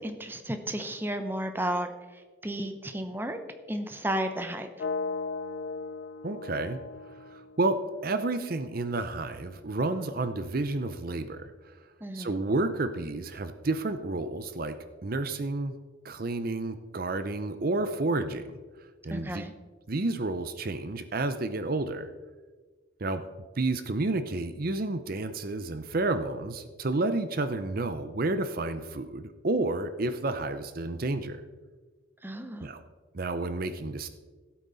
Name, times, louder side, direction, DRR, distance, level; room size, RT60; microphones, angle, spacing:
voice 1, 0.0-3.4 3.7-4.7 12.0-12.4 19.1-19.5 32.2-32.7, right 1 dB, 10° right, 7 dB, 0.7 m, -33 dB
sound 1, 4.8-8.7, left 4 dB, 60° left, 0.5 m, -37 dB
voice 2, 6.2-6.8 7.3-7.8 8.0-11.7 12.1-14.7 15.0-15.7 16.0-18.6 19.0-19.4 19.9-22.1 23.0-23.2 23.6-31.4 32.6-32.8 33.1-34.1, right 2 dB, 45° right, 10 dB, 0.6 m, -30 dB
16.0 x 8.5 x 4.0 m, 1.3 s
head